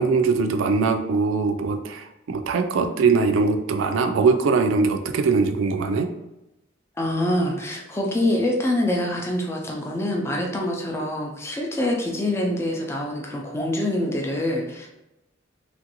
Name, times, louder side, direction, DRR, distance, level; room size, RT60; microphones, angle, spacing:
voice 1, 0.0-6.1, right 4 dB, 80° right, 6 dB, 0.3 m, -21 dB
voice 2, 7.0-14.9, left 1 dB, 15° left, 0 dB, 0.4 m, -25 dB
3.0 x 2.5 x 2.8 m, 0.94 s
head